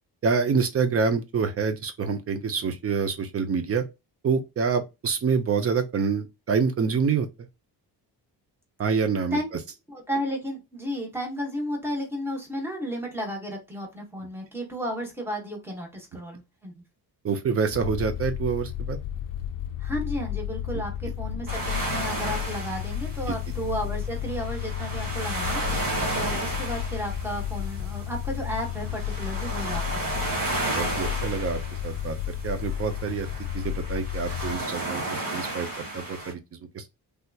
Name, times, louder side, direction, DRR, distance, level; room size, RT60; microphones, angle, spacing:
voice 1, 0.2-3.8 4.2-7.3 8.8-9.4 17.2-19.0 23.3-23.4 30.8-33.3 33.5-35.7 35.9-36.4 36.7-36.9, right 5 dB, 35° right, 0.5 m, -26 dB
voice 2, 9.9-16.7 19.8-25.6 26.1-30.4, equal, 5° right, 1.0 m, -33 dB
sound 1, 17.7-34.6, left 10 dB, 55° left, 0.5 m, -32 dB
sound 2, 21.5-36.3, right 2 dB, 55° right, 1.4 m, -33 dB
3.3 x 2.8 x 2.3 m
wide cardioid pair, 165°, 41 cm